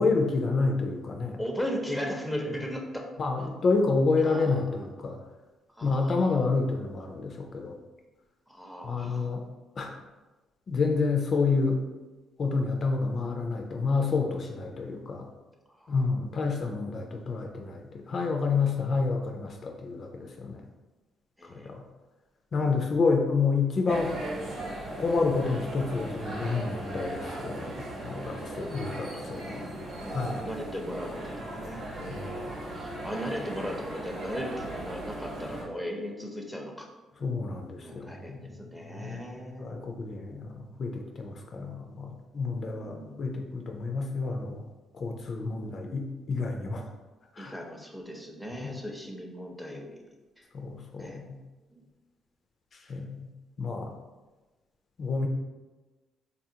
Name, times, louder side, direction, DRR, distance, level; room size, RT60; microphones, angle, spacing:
voice 1, 0.0-1.4 3.2-5.2 5.8-7.7 8.8-9.4 9.8-9.9 10.7-11.8 12.4-15.3 15.9-20.6 21.5-21.8 22.5-24.1 25.0-27.8 28.0-29.7 30.1-30.4 32.1-32.5 37.2-38.4 38.8-39.2 39.6-44.7 44.9-46.8 47.4-47.5 48.6-48.7 50.5-51.4 52.9-53.3 53.6-53.9 55.0-55.3, left 4 dB, 50° left, 3 dB, 0.3 m, -29 dB
voice 2, 1.4-3.0 3.4-3.5 4.2-4.6 5.8-6.3 8.5-9.3 15.8-16.0 21.4-21.8 28.7-36.9 37.8-39.9 42.6-43.3 45.6-45.8 47.4-50.0 50.4-50.5 51.0-51.2 51.7-51.8, equal, ahead, 0 dB, 0.6 m, -38 dB
sound 1, 23.9-35.6, right 1 dB, 70° right, 1.0 m, -37 dB
3.7 x 2.4 x 2.7 m, 1.2 s
cardioid pair, 90°, 0 cm